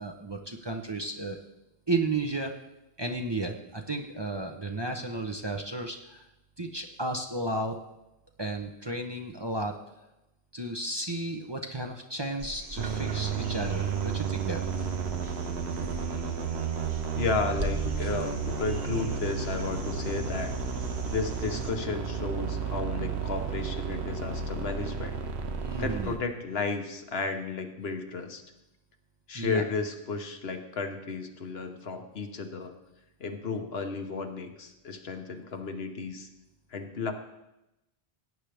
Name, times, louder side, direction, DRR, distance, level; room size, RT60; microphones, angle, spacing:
voice 1, 0.0-1.4 1.9-2.5 3.0-6.2 6.6-7.8 8.4-9.8 10.5-14.6 25.6-26.2 29.3-29.6, right 2 dB, 25° right, 3 dB, 0.7 m, -33 dB
sound 1, 12.4-21.7 23.8-23.9, right 1 dB, 55° right, 1.3 m, -40 dB
sound 2, 12.8-26.2, right 7 dB, 80° right, 1.1 m, -32 dB
voice 2, 17.1-20.5 21.1-25.2 25.8-28.4 29.3-32.7 33.2-36.3 36.7-37.1, left 4 dB, 70° left, 6 dB, 1.2 m, -33 dB
17.0 x 9.0 x 3.4 m, 0.94 s
omnidirectional pair, 1.1 m